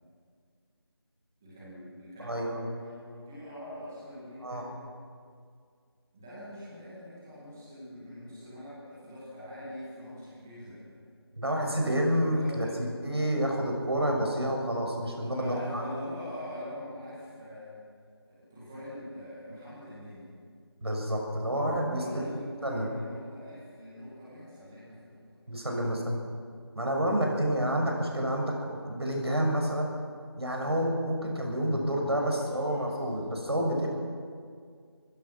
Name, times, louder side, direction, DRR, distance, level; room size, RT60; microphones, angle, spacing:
voice 1, 1.4-4.8 6.1-11.0 12.4-12.7 15.1-17.8 18.2-20.3 21.9-25.4 26.0-26.2 32.0-32.9, equal, 5° right, -11 dB, 2.0 m, -43 dB
voice 2, 2.2-2.6 4.4-4.6 11.4-12.7 13.0-15.8 20.8-22.3 22.6-22.9 25.5-26.1 26.7-29.9 30.4-33.9, equal, 70° right, 1 dB, 6.6 m, -29 dB
27.0 x 16.0 x 6.2 m, 2.1 s
figure-of-eight pair, 180°, 14 cm